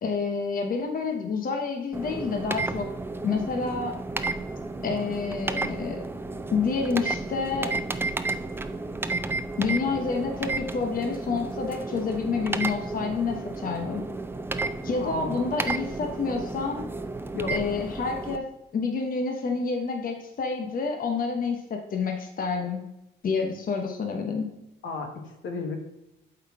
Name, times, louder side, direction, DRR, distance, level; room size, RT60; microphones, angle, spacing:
voice 1, 0.0-2.9 3.2-4.0 4.8-6.0 6.5-7.8 9.6-14.0 14.8-16.9 17.5-18.5 18.7-22.9 23.2-24.5, left 4 dB, 45° left, 3 dB, 1.0 m, -28 dB
sound 1, 1.9-18.4, right 3 dB, 10° right, 0.5 m, -32 dB
voice 2, 15.0-15.4 17.3-17.5 24.8-25.8, left 4 dB, 75° left, 4 dB, 1.4 m, -33 dB
7.9 x 4.0 x 4.7 m, 0.90 s
cardioid pair, 90°, 20 cm